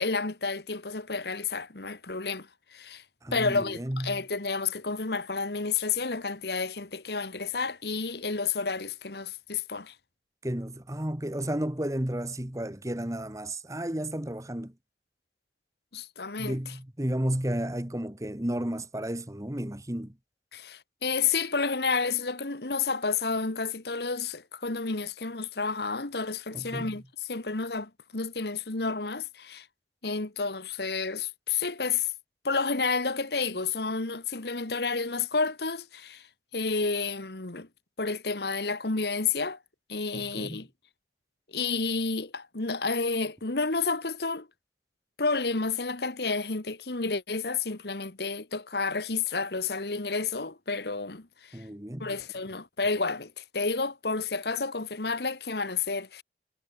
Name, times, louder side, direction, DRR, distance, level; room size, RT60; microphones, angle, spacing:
voice 1, 0.0-3.0 3.3-9.9 15.9-16.6 20.5-27.0 27.3-29.7 30.0-32.1 32.4-36.3 36.5-37.7 38.0-39.6 39.9-40.7 41.5-44.5 45.2-51.6 52.0-56.2, left 4 dB, 65° left, 1.5 m, -30 dB
voice 2, 3.2-4.2 10.4-14.7 16.4-20.2 26.5-27.0 40.1-40.6 51.5-52.1, right 1 dB, 15° right, 1.3 m, -32 dB
head